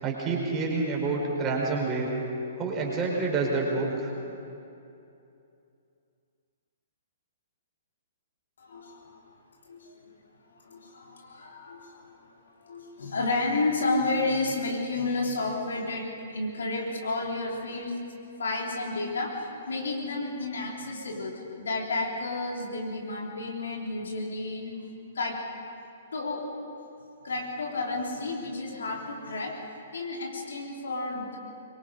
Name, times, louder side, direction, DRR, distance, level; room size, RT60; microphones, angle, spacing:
voice 1, 0.0-2.1 2.6-4.1, right 3 dB, 20° right, -2 dB, 4.5 m, -28 dB
voice 2, 8.6-9.2 9.6-10.0 10.5-18.0 18.3-24.8 25.1-25.5 26.1-26.5 27.2-29.6 29.9-31.4, left 2 dB, 60° left, -1 dB, 3.6 m, -31 dB
25.0 x 22.5 x 5.3 m, 2.7 s
figure-of-eight pair, 115°, 0 cm